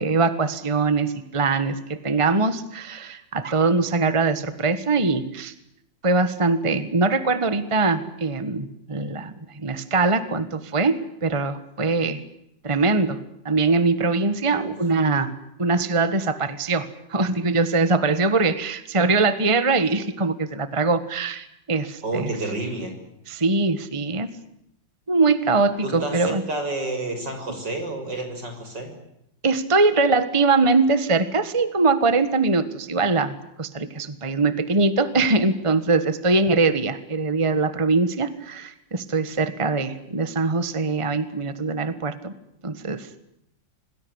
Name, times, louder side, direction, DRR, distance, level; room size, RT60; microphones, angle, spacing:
voice 1, 0.0-5.5 6.0-12.2 12.6-13.2 13.4-15.3 15.6-22.3 23.3-24.3 25.1-26.4 29.4-42.3 42.6-43.2, right 3 dB, 20° right, 12 dB, 1.5 m, -22 dB
voice 2, 22.0-22.9 25.8-28.9, right 2 dB, 70° right, 5 dB, 7.0 m, -30 dB
27.5 x 20.0 x 9.7 m, 0.79 s
omnidirectional pair, 2.0 m